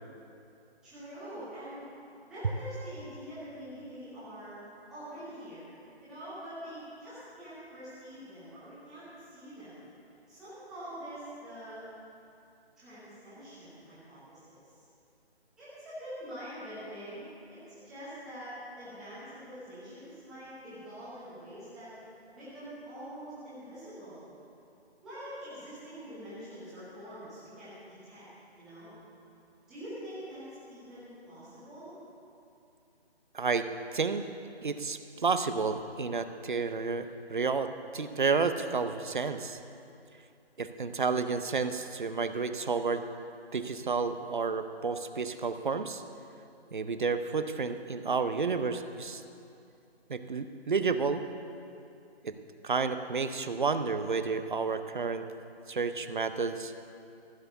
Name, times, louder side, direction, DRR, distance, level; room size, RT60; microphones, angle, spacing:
voice 1, 0.8-1.8 2.3-4.6 4.9-5.7 6.0-9.8 10.3-11.8 12.8-14.8 15.6-21.9 22.3-24.2 25.0-28.3 28.6-28.9 29.7-31.9, equal, ahead, -13 dB, 0.9 m, -45 dB
voice 2, 33.3-33.6 33.9-34.2 34.6-39.6 40.6-43.0 43.5-46.0 46.7-49.2 50.1-51.2 52.2-52.3 52.6-55.2 55.7-56.7, right 4 dB, 50° right, 10 dB, 0.6 m, -31 dB
14.5 x 6.9 x 6.7 m, 2.7 s
figure-of-eight pair, 155°, 32 cm